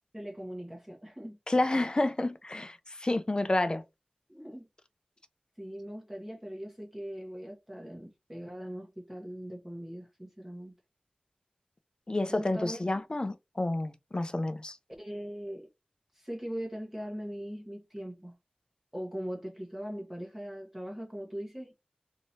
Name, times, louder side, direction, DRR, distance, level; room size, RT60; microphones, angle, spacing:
voice 1, 0.1-1.4 4.3-4.7 5.6-10.7 12.3-13.0 15.0-15.7 16.1-18.4 18.9-21.7, equal, 10° right, 0.9 m, -40 dB
voice 2, 1.5-3.8 12.1-14.8, left 2 dB, 35° left, 0.4 m, -29 dB
3.1 x 2.7 x 2.7 m
wide cardioid pair, 70°, 3 cm